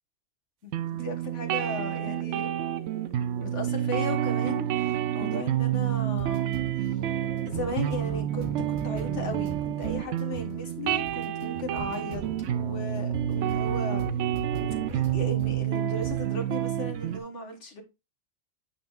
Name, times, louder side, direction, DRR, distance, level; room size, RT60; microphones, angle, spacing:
voice 1, 0.6-2.5 3.4-7.0 7.5-12.2 12.5-14.0 14.9-17.8, left 2 dB, 75° left, 1.8 m, -36 dB
sound 1, 0.7-17.2, right 11 dB, 90° right, 0.9 m, -29 dB
sound 2, 1.4-15.7 16.0-16.3, right 3 dB, 65° right, 1.5 m, -43 dB
8.7 x 5.5 x 2.4 m
omnidirectional pair, 1.2 m